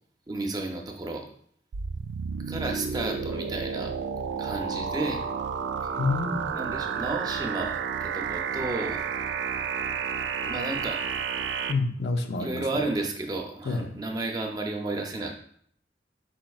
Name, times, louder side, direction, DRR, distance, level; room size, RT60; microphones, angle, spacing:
voice 1, 0.3-1.3 2.5-3.9 4.4-5.2 5.9-6.0 6.5-9.0 10.5-11.0 12.4-15.3, right 2 dB, 20° right, 2 dB, 0.5 m, -32 dB
sound 1, 1.7-11.7, right 6 dB, 90° right, 0.3 m, -31 dB
voice 2, 6.0-6.6 11.7-12.6 13.7-13.9, left 3 dB, 70° left, 6 dB, 0.5 m, -28 dB
5.0 x 4.4 x 2.3 m, 0.64 s
head